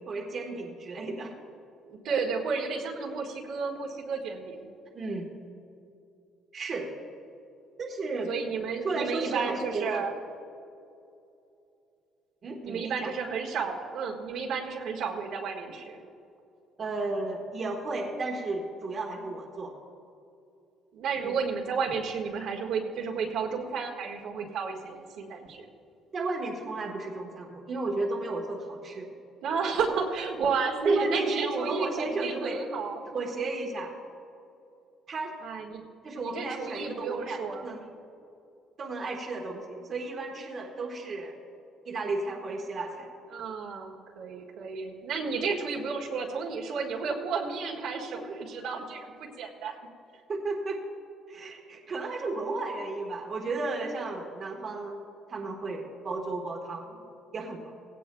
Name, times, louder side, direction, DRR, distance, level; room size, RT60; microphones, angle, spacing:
voice 1, 0.1-1.3 4.9-5.3 6.5-6.9 7.8-8.3 8.8-10.1 12.4-13.1 16.8-19.7 21.2-21.4 26.1-29.1 29.9-30.0 30.8-32.6 33.1-33.9 35.1-35.4 36.0-37.8 38.8-41.3 41.8-43.1 50.3-50.8 51.3-55.0 55.3-57.0 57.3-57.7, right 3 dB, 35° right, 0 dB, 1.4 m, -33 dB
voice 2, 1.9-4.7 8.3-10.1 12.6-16.0 20.9-25.6 29.4-33.0 35.4-35.9 36.1-37.7 43.3-49.8 51.4-51.5, right 5 dB, 70° right, 0 dB, 1.6 m, -32 dB
18.5 x 17.0 x 2.3 m, 2.6 s
cardioid pair, 155°, 0 cm